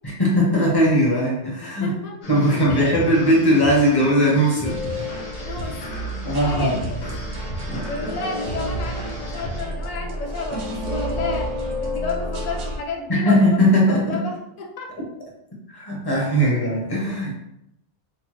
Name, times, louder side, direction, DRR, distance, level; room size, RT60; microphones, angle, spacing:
voice 1, 0.0-1.9 2.3-4.8 6.2-6.8 7.7-7.9 13.1-14.3 15.7-17.3, equal, 25° left, -3 dB, 0.7 m, -19 dB
voice 2, 1.6-2.2 2.7-3.0 5.4-5.8 6.2-6.8 7.8-13.5 13.9-14.9 16.4-16.5, left 3 dB, 55° left, 2 dB, 0.4 m, -31 dB
sound 1, 2.2-9.6, left 1 dB, 75° left, 1.0 m, -35 dB
sound 2, 4.6-12.8, equal, 50° right, 0.6 m, -30 dB
2.9 x 2.0 x 3.0 m, 0.80 s
omnidirectional pair, 1.2 m